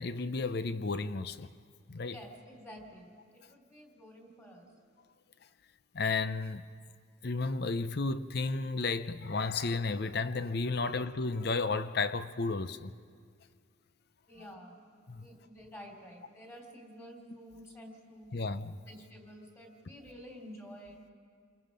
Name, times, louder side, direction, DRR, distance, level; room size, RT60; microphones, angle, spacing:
voice 1, 0.0-1.5 1.9-2.2 5.9-6.7 7.2-12.9 15.1-15.3 18.3-18.8, left 3 dB, 55° left, 0.6 m, -33 dB
voice 2, 2.0-4.7 14.3-18.3 18.9-21.0, equal, 15° left, 3.1 m, -50 dB
28.5 x 22.0 x 5.2 m
head